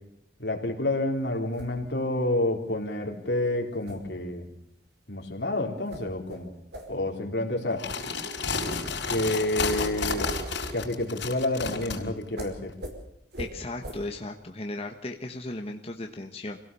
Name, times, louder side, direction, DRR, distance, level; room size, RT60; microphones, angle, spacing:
voice 1, 0.4-4.5 5.1-6.5 6.9-7.9 9.1-10.4 10.7-12.7, left 1 dB, 70° left, 2 dB, 3.8 m, -29 dB
sound 1, 1.2-11.2 12.3-12.5 12.8-12.9 13.3-13.5 13.8-14.0, equal, 65° right, 5.0 m, -45 dB
sound 2, 7.7-12.0, left 4 dB, 90° left, 4.8 m, -31 dB
voice 2, 13.4-16.6, left 2 dB, 35° left, 3 dB, 1.3 m, -36 dB
26.5 x 17.0 x 7.0 m, 0.80 s
head